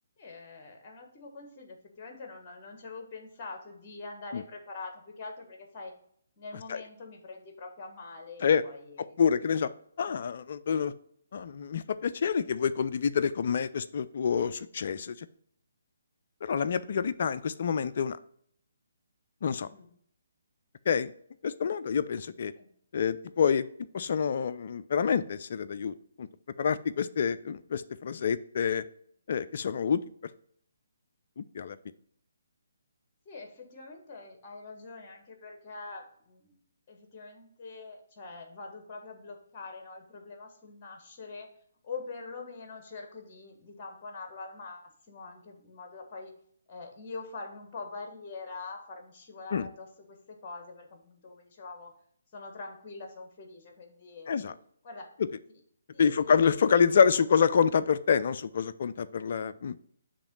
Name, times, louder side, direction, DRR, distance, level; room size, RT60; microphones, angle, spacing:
voice 1, 0.2-5.9 6.4-9.2 19.6-19.9 22.5-22.7 33.2-36.6 36.9-41.5 41.8-46.3 46.7-51.9 52.3-54.5 54.8-55.1 55.9-56.4, left 3 dB, 30° left, 4 dB, 1.3 m, -44 dB
voice 2, 9.2-9.7 10.0-10.9 11.3-15.3 16.4-18.2 19.4-19.7 20.9-21.1 21.4-22.5 22.9-23.7 23.9-26.3 26.6-28.8 29.3-30.0 31.4-31.8 49.5-49.7 54.3-54.5 56.0-59.8, left 6 dB, 45° left, 13 dB, 0.3 m, -27 dB
6.9 x 3.0 x 5.3 m, 0.64 s
figure-of-eight pair, 140°, 0 cm